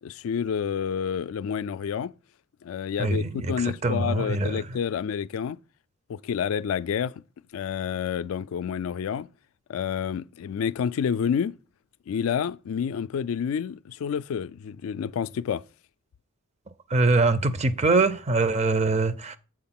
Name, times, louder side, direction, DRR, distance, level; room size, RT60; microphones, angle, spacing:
voice 1, 0.0-2.1 2.6-5.6 6.1-7.1 7.5-9.3 9.7-11.6 12.1-15.6, left 7 dB, 80° left, 0.3 m, -29 dB
voice 2, 3.0-4.8 16.9-19.4, right 3 dB, 30° right, 0.5 m, -23 dB
7.7 x 4.2 x 5.8 m
head